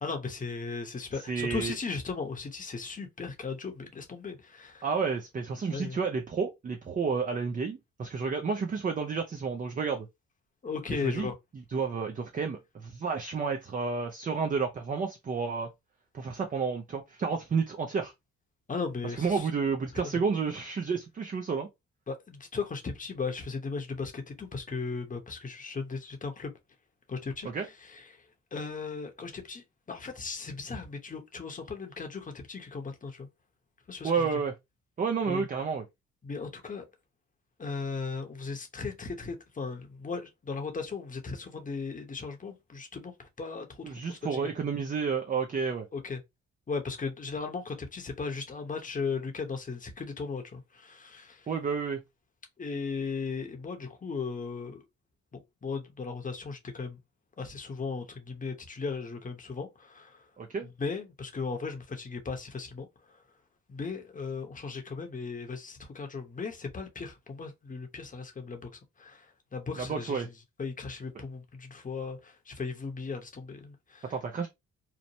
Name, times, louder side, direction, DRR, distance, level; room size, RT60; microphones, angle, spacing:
voice 1, 0.0-4.8 5.7-6.0 10.6-11.3 18.7-19.5 22.1-26.5 27.1-27.5 27.8-28.1 28.5-33.3 33.9-34.4 35.3-35.5 36.2-36.8 37.6-44.5 45.9-46.2 46.7-51.5 52.6-54.8 55.3-57.0 57.4-60.3 60.6-62.9 63.7-68.7 69.0-70.2 70.6-74.1, left 4 dB, 25° left, 0.8 m, -37 dB
voice 2, 1.3-1.7 4.8-10.1 10.9-11.3 11.7-15.7 16.1-18.1 19.0-21.7 27.4-27.7 34.0-34.5 35.0-35.8 43.8-45.9 51.5-52.0 60.4-60.7 69.8-70.3 74.1-74.5, right 5 dB, 25° right, 0.4 m, -31 dB
2.9 x 2.0 x 2.6 m
cardioid pair, 90°, 30 cm